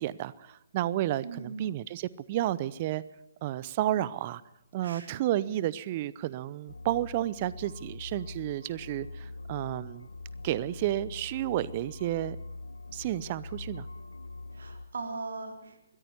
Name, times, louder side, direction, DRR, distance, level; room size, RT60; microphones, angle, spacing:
voice 1, 0.0-3.0 3.4-4.4 4.7-10.1 10.4-12.4 12.9-13.9, right 13 dB, 40° right, 19 dB, 0.7 m, -31 dB
voice 2, 1.2-1.7 4.8-5.2 14.5-15.8, right 3 dB, 70° right, 5 dB, 4.0 m, -39 dB
sound 1, 6.7-14.9, left 2 dB, 85° left, 1.2 m, -43 dB
21.5 x 14.0 x 9.7 m, 0.85 s
figure-of-eight pair, 135°, 0 cm